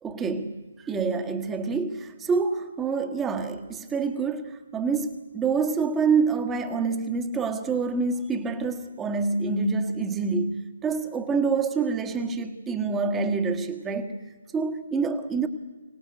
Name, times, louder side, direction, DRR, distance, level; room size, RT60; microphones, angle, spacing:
voice 1, 0.0-14.1 14.5-15.5, right 4 dB, 10° right, 7 dB, 1.6 m, -27 dB
24.5 x 18.0 x 8.0 m, 1.3 s
figure-of-eight pair, 145°, 0 cm